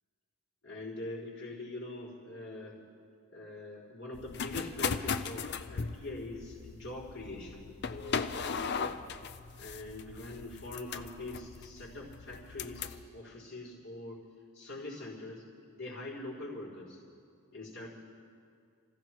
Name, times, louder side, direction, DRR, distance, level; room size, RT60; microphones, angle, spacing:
voice 1, 0.6-2.8 3.3-8.9 9.6-14.2 14.5-17.0 17.5-17.9, left 2 dB, 65° left, -14 dB, 4.5 m, -43 dB
sound 1, 4.1-13.0, left 5 dB, 50° left, 0.5 m, -38 dB
29.5 x 15.0 x 3.1 m, 2.3 s
head